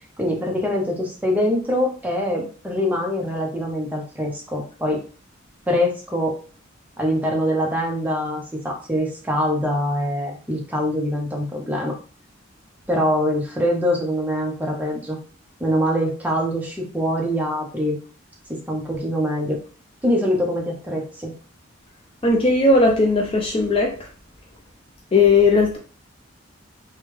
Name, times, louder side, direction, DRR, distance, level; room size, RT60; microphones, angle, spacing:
voice 1, 0.2-5.0 5.7-6.4 7.0-12.0 12.9-15.2 15.6-18.0 18.5-19.6 20.0-21.3, equal, 10° right, 0 dB, 0.7 m, -24 dB
voice 2, 22.2-24.1 25.1-25.8, left 3 dB, 30° left, 1 dB, 0.4 m, -17 dB
3.4 x 2.3 x 3.1 m, 0.40 s
head